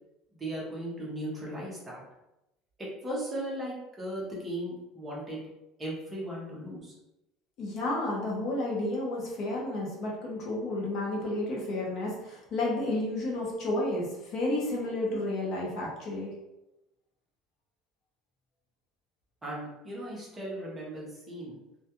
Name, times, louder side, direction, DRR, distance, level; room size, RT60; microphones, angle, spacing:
voice 1, 0.3-2.0 2.8-5.4 5.8-6.9 19.4-21.6, right 1 dB, 10° right, -5 dB, 0.7 m, -37 dB
voice 2, 7.6-16.3, left 1 dB, 40° left, -3 dB, 0.6 m, -31 dB
2.3 x 2.2 x 2.8 m, 0.92 s
cardioid pair, 180°, 0 cm